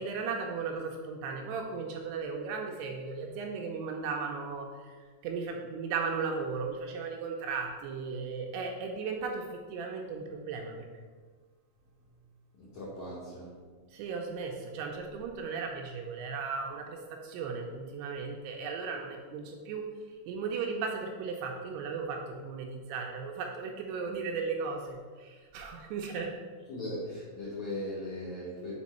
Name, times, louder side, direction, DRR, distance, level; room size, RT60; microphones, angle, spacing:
voice 1, 0.0-4.7 5.2-9.4 9.7-11.0 13.9-17.0 17.2-19.8 20.3-26.3, right 5 dB, 80° right, 2 dB, 2.5 m, -36 dB
voice 2, 12.6-13.6 26.7-28.7, left 1 dB, 70° left, -8 dB, 1.8 m, -38 dB
6.1 x 4.3 x 4.2 m, 1.5 s
omnidirectional pair, 5.0 m